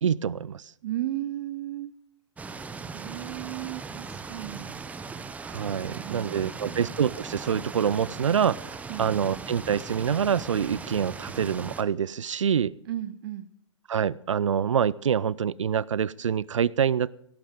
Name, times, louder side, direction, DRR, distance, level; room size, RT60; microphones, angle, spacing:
voice 1, 0.0-0.6 5.4-12.7 13.9-17.1, right 8 dB, 80° right, 23 dB, 0.5 m, -26 dB
voice 2, 0.8-1.9 2.9-4.8 5.8-6.8 8.9-9.2 12.9-13.5, right 13 dB, 45° right, 12 dB, 0.7 m, -35 dB
sound 1, 2.4-11.8, right 4 dB, 10° right, 0.7 m, -39 dB
17.0 x 14.5 x 3.7 m, 0.73 s
hypercardioid pair, 120°, 16 cm